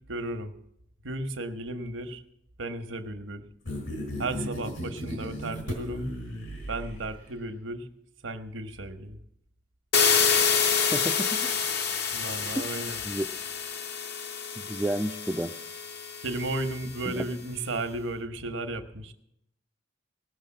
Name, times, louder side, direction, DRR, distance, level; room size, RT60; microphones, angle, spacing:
voice 1, 0.1-0.5 1.0-2.2 2.6-3.5 4.2-6.1 6.7-7.9 8.2-9.2 12.1-13.0 16.2-19.1, right 2 dB, 80° right, 7 dB, 1.1 m, -34 dB
sound 1, 3.7-7.4, equal, 80° left, 4.6 m, -36 dB
sound 2, 9.9-16.8, left 6 dB, 55° left, 1.0 m, -27 dB
voice 2, 10.9-11.5 12.4-12.5 13.0-13.3 14.6-15.5 17.1-17.2, right 1 dB, 5° right, 0 dB, 0.4 m, -31 dB
18.5 x 6.5 x 7.4 m, 0.76 s
head